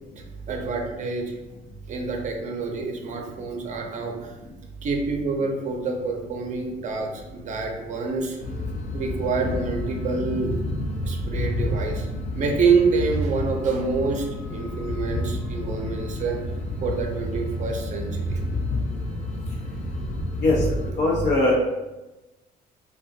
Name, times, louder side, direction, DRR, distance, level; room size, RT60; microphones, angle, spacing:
voice 1, 0.1-1.3 1.9-4.3 4.8-10.5 11.0-12.1 12.4-16.4 16.8-18.4, right 4 dB, 45° right, 2 dB, 0.5 m, -27 dB
sound 1, 8.4-20.9, left 1 dB, 45° left, 0.5 m, -30 dB
voice 2, 21.0-21.5, left 2 dB, 80° left, -2 dB, 0.8 m, -20 dB
2.3 x 2.2 x 2.6 m, 1.0 s
cardioid pair, 110°, 17 cm